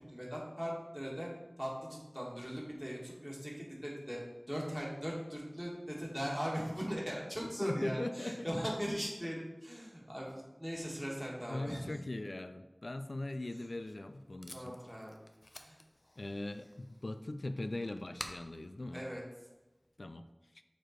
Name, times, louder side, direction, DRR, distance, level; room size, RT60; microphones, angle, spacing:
voice 1, 0.1-1.3 1.6-4.2 4.5-12.0 14.5-15.2 15.6-15.8 18.9-19.2, equal, 5° right, -3 dB, 2.1 m, -39 dB
voice 2, 7.6-8.6 11.5-14.8 16.2-19.1 20.0-20.2, left 2 dB, 90° left, 10 dB, 0.3 m, -40 dB
Packing tape duct tape, 13.5-20.0, left 1 dB, 55° left, 0.7 m, -53 dB
6.8 x 4.6 x 4.5 m, 1.1 s
wide cardioid pair, 40°, 0 cm